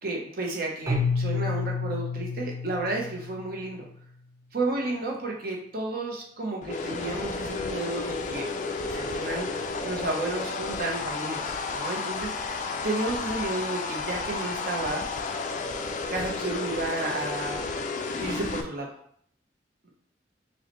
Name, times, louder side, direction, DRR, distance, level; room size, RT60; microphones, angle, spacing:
voice 1, 0.0-3.8 4.5-8.5 8.8-12.6 12.8-15.1 16.1-17.8 18.2-18.9, right 2 dB, 55° right, 0 dB, 0.8 m, -32 dB
Keyboard (musical), 0.9-3.8, left 4 dB, 20° right, 0.9 m, -30 dB
sound 1, 6.6-18.6, left 4 dB, 40° left, 0.3 m, -32 dB
5.4 x 2.2 x 3.0 m, 0.64 s
head